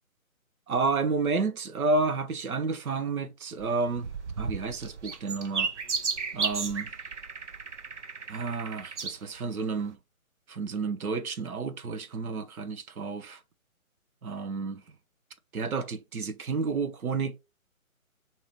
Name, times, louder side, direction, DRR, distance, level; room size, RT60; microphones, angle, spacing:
voice 1, 0.7-4.1 4.4-5.7 6.3-6.9 8.3-10.0 10.5-13.4 14.2-14.8 15.5-17.4, right 4 dB, 90° right, 0.9 m, -30 dB
sound 1, 3.6-9.2 9.8-9.9, right 5 dB, 55° right, 0.7 m, -34 dB
5.2 x 2.9 x 3.0 m
hypercardioid pair, 175°, 42 cm